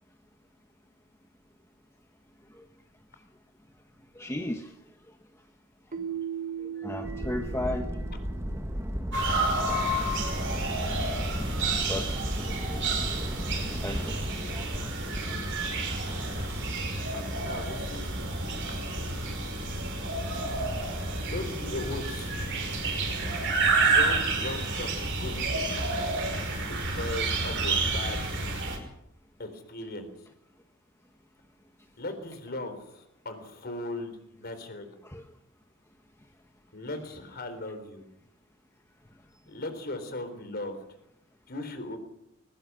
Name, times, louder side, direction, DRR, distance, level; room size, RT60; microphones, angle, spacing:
voice 1, 4.1-4.7 6.6-7.9 9.7-9.8 10.9-11.0 11.9-12.9 13.7-14.1 15.7-15.8 16.9-17.1 20.3-20.4 35.0-35.2, left 1 dB, 10° left, 4 dB, 1.1 m, -36 dB
Keyboard (musical), 5.9-8.8, right 8 dB, 35° right, 1.3 m, -38 dB
sound 1, 7.0-16.7, equal, 10° right, 1.6 m, -36 dB
sound 2, 9.1-28.8, right 2 dB, 55° right, 5.3 m, -29 dB
voice 2, 17.4-18.3 21.2-22.3 22.8-23.2 23.7-25.8 26.7-28.3 29.4-30.1 32.0-34.1 34.4-34.9 36.7-38.0 39.5-40.8 41.5-42.0, left 2 dB, 45° left, 8 dB, 4.0 m, -38 dB
22.0 x 19.0 x 6.3 m, 0.80 s
head